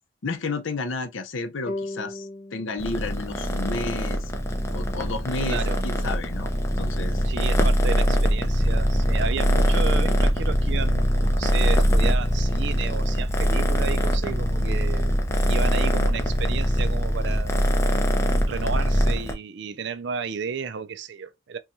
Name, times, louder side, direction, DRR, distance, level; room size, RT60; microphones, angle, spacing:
voice 1, 0.2-4.3 4.7-6.5 6.8-7.2, left 3 dB, 70° left, 0.6 m, -31 dB
sound 1, 1.7-4.9, left 2 dB, 35° left, 1.0 m, -39 dB
Purr, 2.8-19.3, equal, 15° left, 0.5 m, -22 dB
voice 2, 5.4-5.8 7.2-15.2 15.4-17.7 18.4-21.6, right 6 dB, 55° right, 0.4 m, -33 dB
4.4 x 2.3 x 2.6 m
head